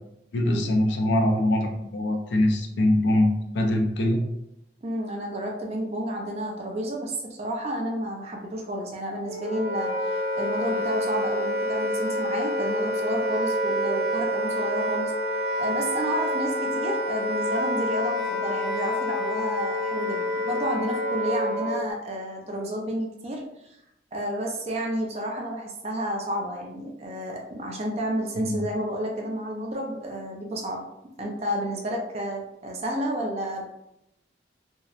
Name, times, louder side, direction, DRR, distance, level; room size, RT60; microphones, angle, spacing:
voice 1, 0.3-4.2 28.4-28.6, left 1 dB, 80° left, 3 dB, 0.4 m, -23 dB
voice 2, 4.8-15.1 15.6-23.8 24.1-30.8 31.2-33.7, equal, 35° right, 0 dB, 0.4 m, -31 dB
Wind instrument woodwind instrument, 9.2-21.9, equal, 60° right, 0.9 m, -27 dB
2.7 x 2.1 x 2.4 m, 0.83 s
head